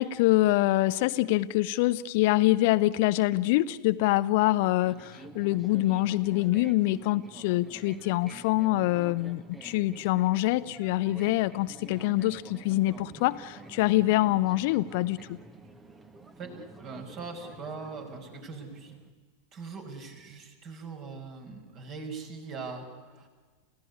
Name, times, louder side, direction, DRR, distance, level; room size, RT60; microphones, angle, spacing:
voice 1, 0.0-15.4, left 17 dB, 50° left, 14 dB, 0.7 m, -25 dB
sound 1, 4.8-19.1, right 3 dB, 15° right, 1.8 m, -48 dB
voice 2, 16.8-19.0 19.5-23.3, right 4 dB, 35° right, 4 dB, 5.3 m, -41 dB
29.0 x 16.5 x 9.8 m, 1.5 s
figure-of-eight pair, 90°, 0 cm